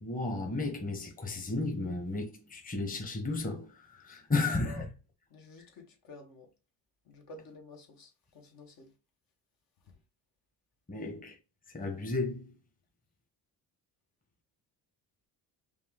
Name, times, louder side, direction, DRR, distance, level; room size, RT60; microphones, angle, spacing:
voice 1, 0.0-4.9 10.9-11.4 11.7-12.4, left 3 dB, 20° left, 1.1 m, -33 dB
voice 2, 5.3-6.5 7.1-8.9, left 2 dB, 60° left, 1.3 m, -51 dB
5.2 x 2.3 x 3.7 m
cardioid pair, 100°, 41 cm